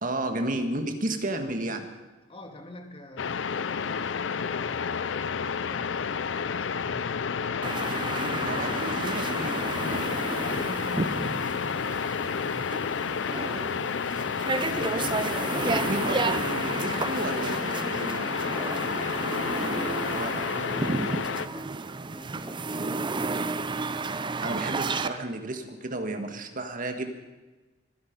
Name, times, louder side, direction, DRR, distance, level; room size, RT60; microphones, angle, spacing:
voice 1, 0.0-1.9 8.1-9.7 14.7-15.2 15.5-18.3 20.1-20.3 22.7-22.9 24.4-27.1, right 1 dB, 45° right, 6 dB, 1.7 m, -33 dB
voice 2, 2.3-7.4 10.4-14.8 18.4-21.8 22.1-23.5, left 1 dB, 30° left, 5 dB, 1.9 m, -46 dB
sound 1, 3.2-21.5, left 6 dB, 75° left, 0.5 m, -30 dB
sound 2, 7.6-25.1, right 3 dB, 25° right, 0.5 m, -32 dB
23.0 x 10.5 x 5.3 m, 1.2 s
head